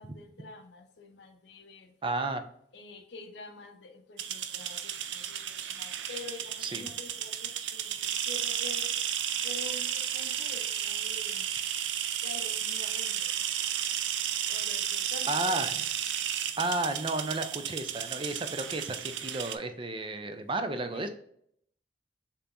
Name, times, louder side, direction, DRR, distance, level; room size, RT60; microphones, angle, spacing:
voice 1, 0.0-1.9 2.7-8.9 9.4-11.5 12.2-13.4 14.5-15.6 20.9-21.1, left 3 dB, 70° left, 4 dB, 0.8 m, -47 dB
voice 2, 2.0-2.4 6.6-6.8 14.4-14.5 15.3-15.8 16.6-21.1, right 2 dB, 30° right, 8 dB, 0.5 m, -32 dB
sound 1, 4.2-19.6, right 10 dB, 80° right, 0.4 m, -33 dB
6.8 x 2.9 x 2.6 m, 0.68 s
head